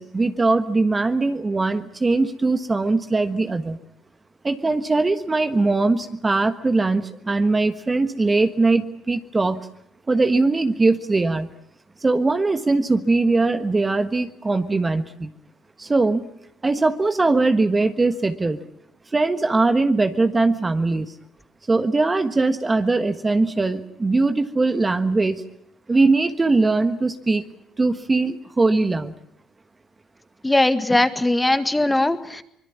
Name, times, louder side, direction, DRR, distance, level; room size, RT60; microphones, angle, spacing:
voice 1, 0.0-3.8 4.4-9.7 10.1-11.5 12.0-15.3 15.8-16.2 16.6-18.6 19.1-21.1 21.7-25.4 25.9-27.4 27.8-29.1, right 3 dB, 25° right, 9 dB, 1.4 m, -21 dB
voice 2, 30.4-32.4, left 2 dB, 10° left, 10 dB, 1.8 m, -20 dB
24.5 x 21.5 x 7.2 m, 0.73 s
hypercardioid pair, 65°, 0 cm